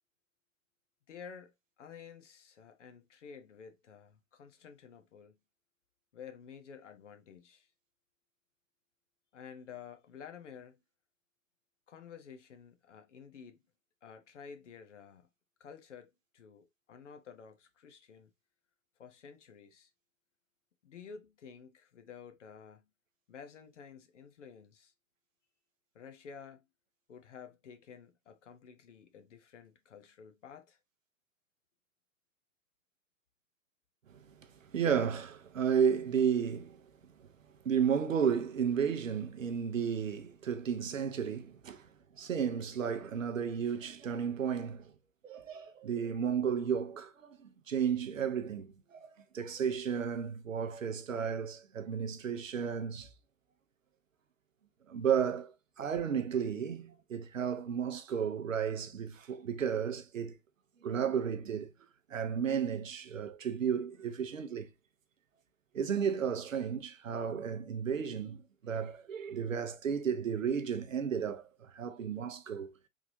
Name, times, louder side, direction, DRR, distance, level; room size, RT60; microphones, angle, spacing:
voice 1, 1.1-1.5 1.8-5.4 6.1-7.7 9.3-10.7 11.9-13.6 14.0-15.2 15.6-18.3 19.0-19.9 20.8-22.9 23.3-24.9 25.9-26.6 27.1-30.8, left 6 dB, 65° left, 0.9 m, -51 dB
voice 2, 34.7-36.8 37.6-41.9 42.2-44.9 45.2-49.1 49.3-53.1 54.9-60.4 60.8-61.7 62.1-64.7 65.7-72.7, right 7 dB, 75° right, 0.8 m, -33 dB
3.7 x 3.2 x 2.6 m
figure-of-eight pair, 105°, 39 cm